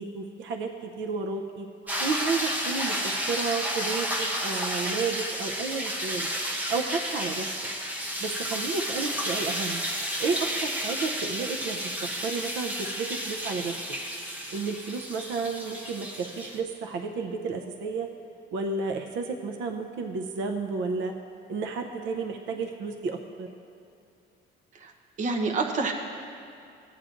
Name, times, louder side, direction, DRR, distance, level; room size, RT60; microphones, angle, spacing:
voice 1, 0.0-1.7 2.0-6.3 6.7-7.5 8.2-9.8 10.2-13.8 14.5-18.1 18.5-21.1 21.5-23.5, right 4 dB, 80° right, 4 dB, 0.6 m, -32 dB
sound 1, 1.9-16.6, equal, 10° right, 0.7 m, -31 dB
voice 2, 25.2-25.9, right 3 dB, 40° right, 1 dB, 0.9 m, -27 dB
16.0 x 9.1 x 2.5 m, 2.5 s
cardioid pair, 180°, 19 cm